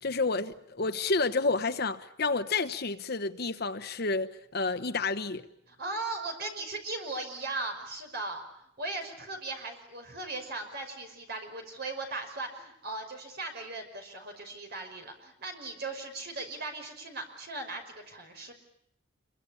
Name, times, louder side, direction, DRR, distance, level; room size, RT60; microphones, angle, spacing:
voice 1, 0.0-5.4, left 3 dB, 50° left, 1.1 m, -30 dB
voice 2, 5.7-18.5, right 2 dB, 50° right, 5.5 m, -38 dB
26.5 x 23.5 x 8.5 m
head